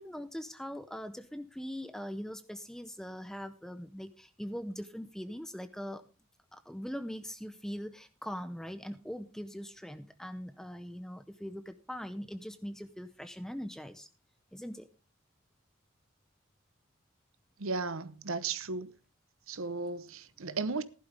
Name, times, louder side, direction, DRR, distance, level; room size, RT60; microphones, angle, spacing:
voice 1, 0.0-6.0 6.5-14.1 14.5-14.9, equal, ahead, 0.5 m, -41 dB
voice 2, 17.6-18.9 19.5-20.8, right 4 dB, 75° right, 0.9 m, -35 dB
15.0 x 11.5 x 3.4 m
head